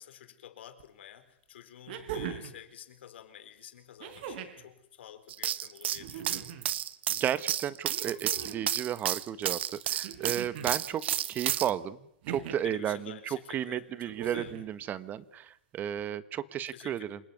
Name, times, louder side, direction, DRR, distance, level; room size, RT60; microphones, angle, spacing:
voice 1, 0.0-6.5 12.6-14.6 16.7-17.0, left 10 dB, 80° left, 10 dB, 4.3 m, -49 dB
sound 1, 0.8-0.9 1.9-2.6 4.0-4.7 5.9-6.7 7.9-8.7 10.0-10.7 12.2-12.8 14.1-14.7 16.0-16.1, right 8 dB, 60° right, 4.9 m, -40 dB
sound 2, 5.3-11.7, right 11 dB, 80° right, 1.5 m, -31 dB
voice 2, 7.1-9.6 9.9-11.0 11.3-12.0 12.3-17.2, right 10 dB, 30° right, 15 dB, 1.4 m, -33 dB
28.0 x 19.5 x 9.6 m, 0.78 s
hypercardioid pair, 130°, 6 cm